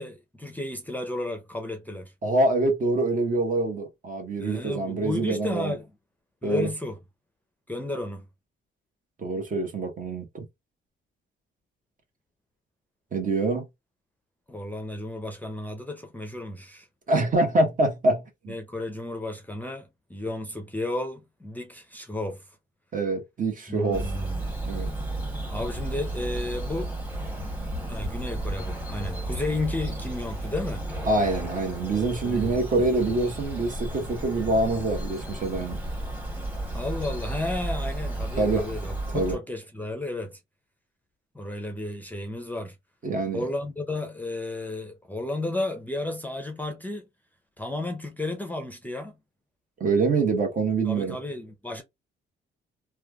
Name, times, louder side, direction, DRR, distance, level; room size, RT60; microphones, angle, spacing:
voice 1, 0.0-2.1 4.4-5.9 6.4-7.0 7.7-8.3 14.5-16.9 18.5-22.5 23.7-24.4 25.5-26.9 27.9-30.9 32.2-32.6 36.7-40.4 41.3-42.8 43.3-47.1 47.6-49.2 50.8-51.8, left 2 dB, 10° left, 0.6 m, -33 dB
voice 2, 2.2-5.7 6.4-6.7 9.2-10.4 13.1-13.7 17.1-18.5 22.9-24.1 24.6-24.9 31.1-35.8 38.4-38.7 39.1-39.4 43.0-43.5 49.8-51.2, right 2 dB, 40° right, 1.0 m, -25 dB
Bird vocalization bird call bird song, 23.9-39.4, right 1 dB, 10° right, 1.2 m, -33 dB
3.2 x 2.3 x 2.2 m
cardioid pair, 90°, 20 cm